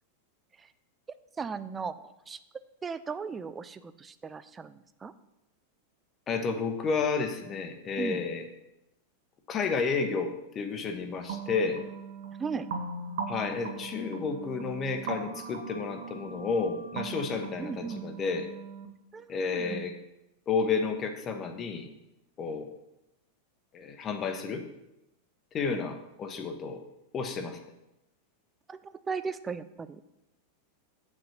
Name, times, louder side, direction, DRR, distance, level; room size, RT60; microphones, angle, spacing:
voice 1, 1.4-2.4 2.8-5.1 8.0-8.2 12.4-12.7 17.6-18.0 19.1-19.9 25.7-25.8 28.7-30.0, right 5 dB, 15° right, 14 dB, 0.5 m, -37 dB
voice 2, 6.3-8.4 9.5-11.8 13.3-18.5 19.3-19.9 20.5-21.9 22.4-22.7 23.7-24.6 25.5-26.8 27.1-27.6, left 5 dB, 25° left, 6 dB, 1.2 m, -31 dB
sound 1, 11.3-18.9, right 5 dB, 55° right, 1.1 m, -39 dB
7.3 x 6.1 x 6.5 m, 0.90 s
figure-of-eight pair, 90°, 0 cm